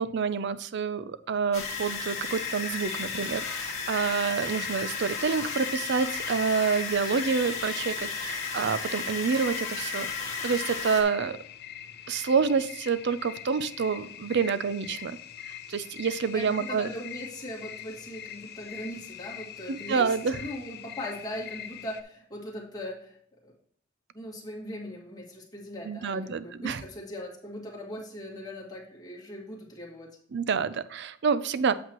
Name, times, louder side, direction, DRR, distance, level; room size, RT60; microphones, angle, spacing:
voice 1, 0.0-11.4 12.1-15.2 15.7-16.9 19.7-20.4 25.8-26.8 30.3-31.7, right 5 dB, 60° right, 14 dB, 0.4 m, -28 dB
sound 1, 1.5-11.0, left 4 dB, 35° left, 1.7 m, -34 dB
sound 2, 2.3-22.0, left 10 dB, 55° left, 0.5 m, -43 dB
voice 2, 16.3-23.2 23.4-23.5 24.1-30.2, equal, 20° left, -4 dB, 2.0 m, -39 dB
8.2 x 7.7 x 3.0 m, 0.64 s
head